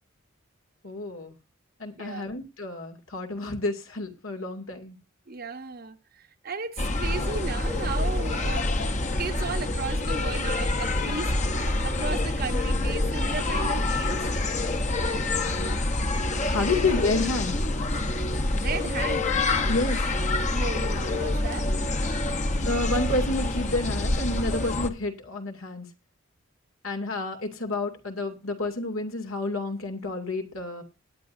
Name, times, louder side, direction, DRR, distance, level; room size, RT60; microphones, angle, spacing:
voice 1, 0.8-1.3 1.8-5.0 15.3-15.7 16.5-17.6 19.7-20.1 22.6-25.9 26.8-30.8, left 2 dB, 90° left, 2.5 m, -29 dB
voice 2, 2.0-2.3 5.3-8.7 9.2-14.3 15.7-15.9 16.5-16.8 18.5-19.3 20.5-21.7, right 4 dB, 45° right, 1.0 m, -35 dB
sound 1, 6.8-24.9, left 2 dB, 35° left, 0.9 m, -26 dB
19.0 x 9.6 x 2.6 m
head